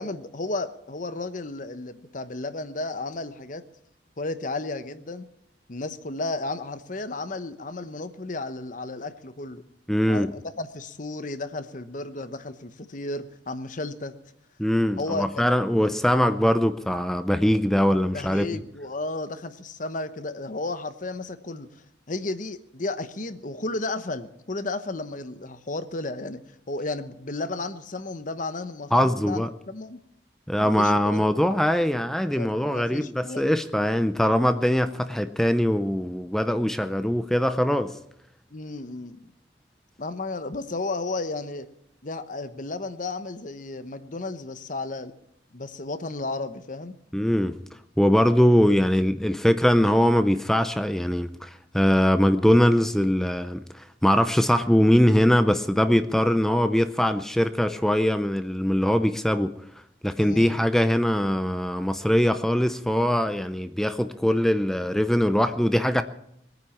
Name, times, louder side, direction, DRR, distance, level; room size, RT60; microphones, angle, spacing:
voice 1, 0.0-3.6 4.2-5.3 5.7-9.6 10.1-14.1 15.0-15.5 18.1-26.4 26.7-30.0 30.6-31.2 32.3-33.5 38.5-39.2 40.0-41.7 42.0-45.1 45.5-46.9 60.2-60.6, left 2 dB, 45° left, 11 dB, 1.0 m, -33 dB
voice 2, 9.9-10.3 14.6-18.6 28.9-29.5 30.5-37.9 47.1-47.6 48.0-59.5 60.0-66.0, equal, ahead, 9 dB, 0.5 m, -22 dB
21.0 x 9.4 x 7.3 m, 0.77 s
head